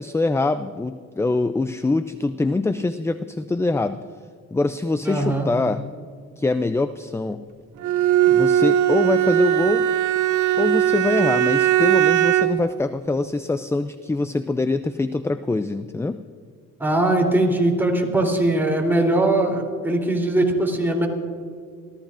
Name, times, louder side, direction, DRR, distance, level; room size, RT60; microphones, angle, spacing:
voice 1, 0.0-4.0 4.5-5.9 6.4-7.4 8.3-9.9 10.6-16.2, left 3 dB, 10° left, 12 dB, 0.4 m, -24 dB
voice 2, 5.0-5.5 16.8-21.1, right 1 dB, 5° right, 0 dB, 3.4 m, -20 dB
Bowed string instrument, 7.8-12.7, right 11 dB, 80° right, 0.7 m, -19 dB
29.5 x 14.0 x 2.5 m, 2.1 s
cardioid pair, 90°, 30 cm